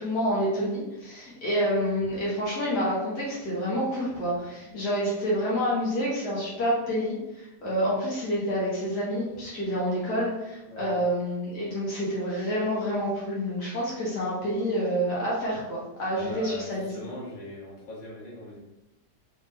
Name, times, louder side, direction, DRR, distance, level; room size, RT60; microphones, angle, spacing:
voice 1, 0.0-16.9, equal, 80° left, -6 dB, 2.0 m, -28 dB
voice 2, 16.1-18.6, equal, 30° left, -7 dB, 1.6 m, -40 dB
4.0 x 3.5 x 3.3 m, 0.94 s
omnidirectional pair, 1.7 m